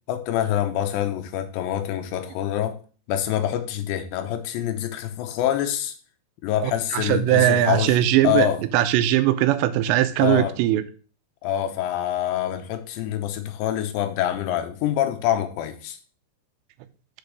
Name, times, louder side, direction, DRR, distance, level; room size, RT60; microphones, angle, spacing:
voice 1, 0.1-2.8 3.1-5.9 6.4-8.0 8.2-8.6 10.2-10.6 11.4-16.0, left 11 dB, 85° left, 3.2 m, -25 dB
voice 2, 6.6-8.5 8.7-10.8, right 13 dB, 90° right, 2.9 m, -20 dB
7.2 x 5.2 x 6.1 m
omnidirectional pair, 5.0 m